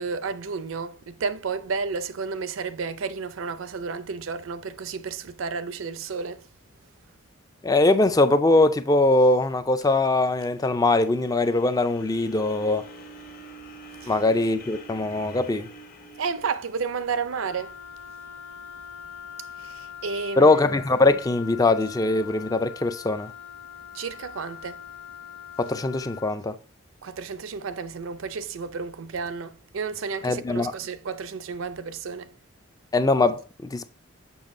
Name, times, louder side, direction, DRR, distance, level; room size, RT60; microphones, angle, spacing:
voice 1, 0.0-6.5 14.0-14.1 16.2-17.8 19.6-20.6 23.9-24.8 27.0-32.4, right 5 dB, 80° right, 0.5 m, -32 dB
voice 2, 7.6-12.8 14.1-15.7 20.4-23.3 25.6-26.6 30.2-30.7 32.9-33.9, left 2 dB, 20° left, 0.4 m, -21 dB
sound 1, 10.0-18.1, right 1 dB, 45° left, 1.1 m, -47 dB
Wind instrument woodwind instrument, 17.3-26.4, left 8 dB, 70° left, 1.4 m, -42 dB
7.0 x 5.9 x 2.6 m
head